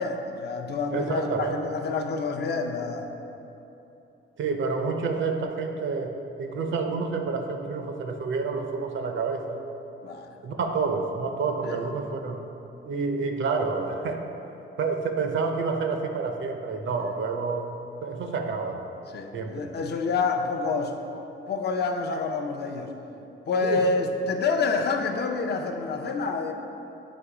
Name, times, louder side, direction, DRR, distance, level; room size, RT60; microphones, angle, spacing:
voice 1, 0.0-3.1 10.0-10.3 11.6-11.8 17.0-17.1 19.1-20.9 21.5-22.9 23.5-26.5, left 4 dB, 50° left, 3 dB, 0.5 m, -28 dB
voice 2, 0.9-1.6 4.4-9.6 10.4-12.4 12.8-14.2 14.8-17.7 18.0-18.8 19.3-19.7 23.6-23.9, right 4 dB, 65° right, 4 dB, 0.6 m, -28 dB
8.2 x 2.9 x 4.8 m, 2.9 s
wide cardioid pair, 145°, 21 cm